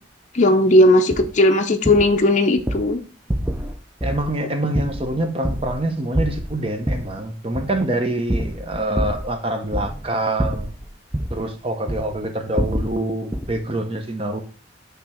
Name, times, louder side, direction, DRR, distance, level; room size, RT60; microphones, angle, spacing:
voice 1, 0.3-3.0, left 1 dB, 40° left, 4 dB, 0.6 m, -16 dB
sound 1, 1.1-1.3 1.8-2.2 2.6-2.9 3.3-3.7 4.0-4.3 4.7-5.8 6.1-7.1 7.5-7.8 8.3-9.3 9.7-10.1 10.4-11.4 11.9-12.2 12.6-13.0 13.3-13.6, equal, 10° right, 0.4 m, -26 dB
voice 2, 4.0-10.7 11.3-14.4, right 1 dB, 30° right, 5 dB, 0.9 m, -25 dB
8.3 x 3.5 x 4.3 m, 0.39 s
head